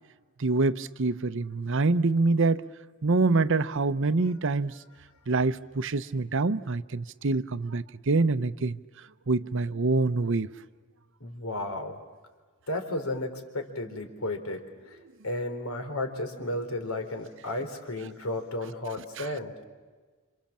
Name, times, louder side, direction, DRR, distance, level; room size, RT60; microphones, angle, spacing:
voice 1, 0.4-2.6 3.0-4.7 5.3-8.8 9.3-10.5, right 3 dB, 60° right, 0.8 m, -25 dB
voice 2, 11.2-12.0 12.7-15.0 15.2-19.5, left 1 dB, 80° left, 3.9 m, -33 dB
29.0 x 26.5 x 7.4 m
head